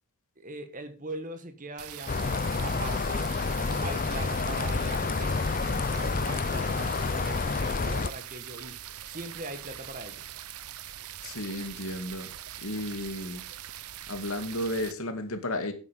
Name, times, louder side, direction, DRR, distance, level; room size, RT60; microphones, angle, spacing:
voice 1, 0.4-3.3 3.6-8.8 9.1-10.2, right 2 dB, 35° right, 9 dB, 1.6 m, -41 dB
sound 1, 1.8-14.9, right 11 dB, 85° right, 0.7 m, -42 dB
sound 2, 2.1-8.1, left 4 dB, 40° left, 0.6 m, -29 dB
voice 2, 11.2-12.3 12.6-13.4 14.1-15.7, left 1 dB, 70° left, 7 dB, 2.3 m, -33 dB
9.9 x 9.1 x 5.3 m, 0.35 s
head